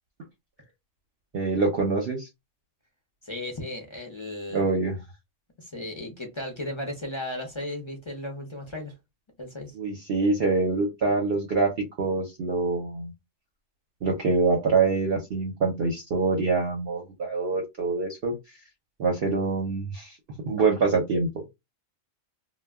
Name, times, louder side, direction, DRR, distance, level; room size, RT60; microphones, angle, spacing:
voice 1, 1.3-2.3 4.5-5.0 9.7-11.7 12.0-13.1 14.0-18.3 19.0-20.2 20.4-21.3, right 3 dB, 55° right, 0.7 m, -25 dB
voice 2, 3.2-4.6 5.6-8.9 9.4-9.7, left 1 dB, 35° left, 0.4 m, -35 dB
2.2 x 2.1 x 3.4 m
omnidirectional pair, 1.4 m